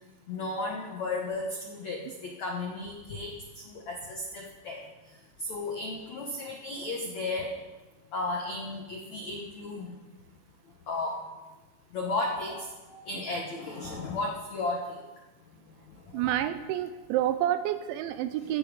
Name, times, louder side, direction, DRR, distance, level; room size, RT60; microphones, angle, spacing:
voice 1, 0.3-3.3 3.9-4.8 5.5-7.5 8.1-9.9 10.9-11.2 11.9-12.7 13.1-14.8, left 2 dB, 85° left, 0 dB, 1.5 m, -34 dB
voice 2, 16.1-18.6, right 12 dB, 80° right, 11 dB, 2.8 m, -29 dB
15.0 x 14.5 x 5.4 m, 1.2 s
omnidirectional pair, 5.7 m